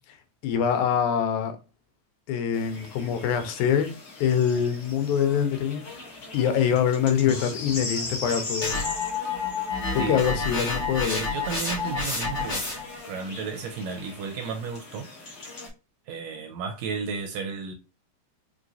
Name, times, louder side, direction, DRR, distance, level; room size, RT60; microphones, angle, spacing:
voice 1, 0.4-1.6 2.3-3.9 4.2-5.8 6.3-8.9 9.9-11.2, left 8 dB, 85° left, 2.1 m, -24 dB
sound 1, 2.5-15.7, left 3 dB, 50° left, 1.3 m, -39 dB
sound 2, 8.6-13.0, left 4 dB, 25° left, 1.0 m, -29 dB
voice 2, 11.0-12.7 13.0-15.1 16.1-17.7, right 5 dB, 80° right, 1.6 m, -33 dB
4.9 x 3.0 x 2.6 m
omnidirectional pair, 3.4 m